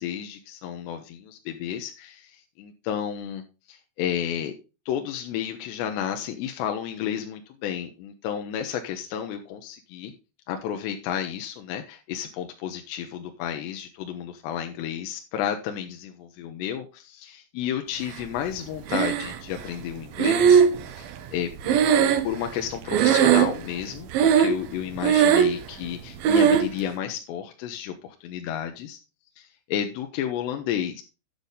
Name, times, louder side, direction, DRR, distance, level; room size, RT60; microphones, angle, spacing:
voice 1, 0.0-3.4 3.7-4.5 4.9-10.1 10.5-20.6 21.0-22.0 22.2-29.0 29.4-31.0, left 9 dB, 75° left, 5 dB, 2.9 m, -32 dB
Breathing, 18.9-19.6 20.2-22.6 22.9-23.7 24.1-24.7 25.0-25.6 26.2-26.7, right 8 dB, 80° right, 2.1 m, -19 dB
10.0 x 6.8 x 3.9 m, 0.30 s
omnidirectional pair, 5.3 m